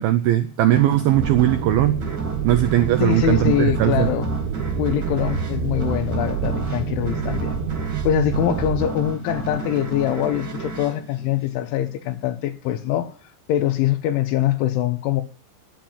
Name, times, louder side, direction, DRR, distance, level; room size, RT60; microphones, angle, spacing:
voice 1, 0.0-2.0 2.4-4.1, right 13 dB, 85° right, 2.1 m, -19 dB
sound 1, 0.7-12.0, right 4 dB, 40° right, 1.6 m, -33 dB
sound 2, 1.1-8.9, right 6 dB, 70° right, 2.8 m, -27 dB
voice 2, 3.0-4.3 4.8-7.6 8.1-13.1 13.5-15.2, left 12 dB, 90° left, 3.6 m, -23 dB
9.4 x 9.4 x 8.9 m
omnidirectional pair, 5.3 m